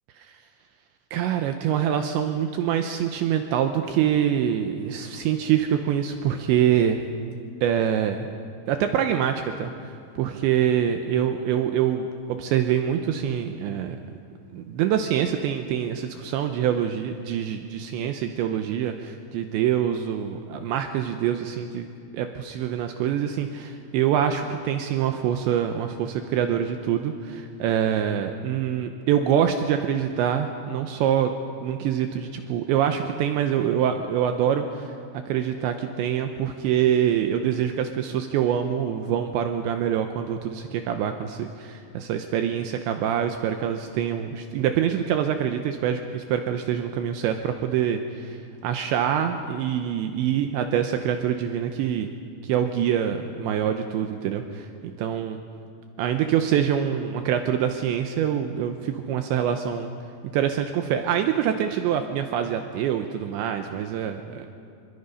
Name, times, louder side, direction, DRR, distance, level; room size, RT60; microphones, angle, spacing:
voice 1, 1.1-7.0 7.6-8.3 8.7-9.7 10.2-14.0 14.5-21.9 22.1-31.3 31.6-34.9 35.3-48.4 48.6-52.1 52.4-54.7 55.0-55.4 56.0-59.9 60.3-64.5, right 9 dB, 80° right, 6 dB, 2.8 m, -25 dB
26.0 x 23.0 x 5.6 m, 2.3 s
omnidirectional pair, 5.8 m